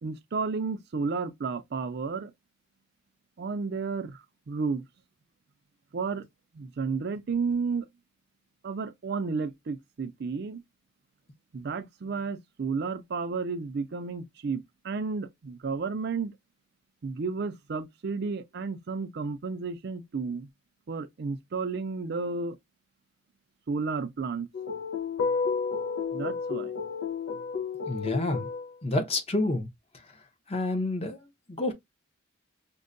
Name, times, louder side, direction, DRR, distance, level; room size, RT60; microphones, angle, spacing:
voice 1, 0.0-2.3 3.4-4.2 4.5-4.8 5.9-6.2 6.5-7.9 8.6-10.6 11.5-16.3 17.0-20.5 20.9-22.6 23.7-24.5 26.1-26.7, right 4 dB, 55° right, 0.4 m, -32 dB
sound 1, 24.5-28.7, left 5 dB, 85° left, 0.6 m, -31 dB
voice 2, 27.9-28.5 28.8-29.7 30.5-31.7, left 2 dB, 30° left, 0.7 m, -29 dB
5.2 x 2.1 x 2.5 m
head